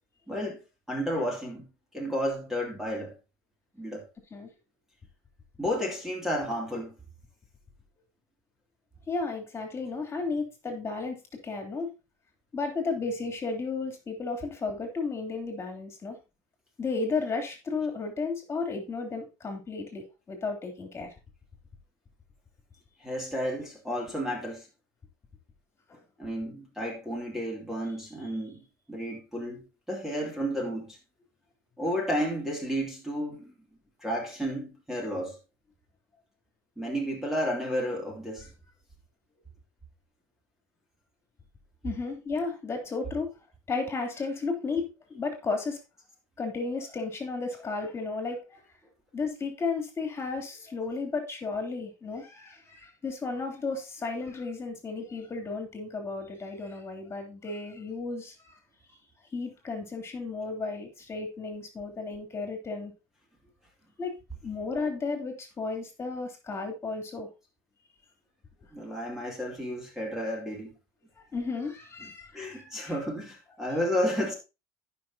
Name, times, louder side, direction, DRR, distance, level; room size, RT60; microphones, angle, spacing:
voice 1, 0.3-0.6 0.9-1.7 1.9-3.2 3.8-4.1 5.6-6.9 23.0-24.7 26.2-31.0 31.8-33.5 34.0-35.4 36.8-38.5 68.7-70.7 72.3-74.3, equal, 5° right, 2.7 m, -32 dB
voice 2, 9.1-11.9 12.5-16.2 16.8-21.1 25.9-26.0 41.8-43.3 43.7-45.8 46.4-48.6 49.1-58.5 59.3-62.9 64.0-64.1 64.4-67.3 71.3-72.9, left 4 dB, 25° left, 3.3 m, -33 dB
15.0 x 6.1 x 2.8 m
supercardioid pair, 100°, 10 cm